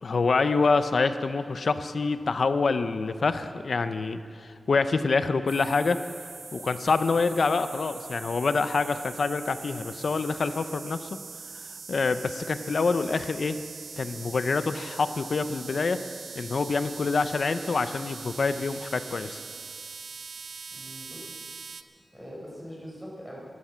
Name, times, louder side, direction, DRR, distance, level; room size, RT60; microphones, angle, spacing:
voice 1, 0.0-6.0 6.5-11.2 11.9-13.6 14.0-16.0 16.3-19.4, left 4 dB, 60° left, 11 dB, 0.6 m, -26 dB
sound 1, 5.5-21.8, right 5 dB, 75° right, 0.6 m, -42 dB
voice 2, 20.7-21.6 22.1-23.4, equal, 5° right, -4 dB, 4.5 m, -43 dB
13.0 x 12.0 x 7.3 m, 2.2 s
wide cardioid pair, 120°, 0 cm